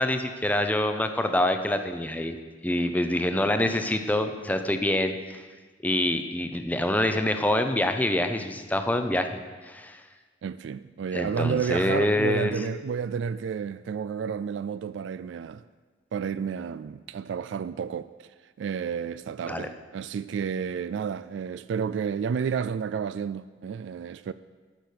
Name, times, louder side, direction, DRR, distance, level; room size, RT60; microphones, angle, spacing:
voice 1, 0.0-2.4 2.6-5.4 5.8-9.4 9.7-10.0 11.1-12.5 19.5-19.7, left 1 dB, 10° left, 0.6 m, -26 dB
voice 2, 10.4-15.6 16.1-18.3 18.6-24.3, right 6 dB, 80° right, 0.3 m, -31 dB
12.0 x 6.1 x 6.6 m
head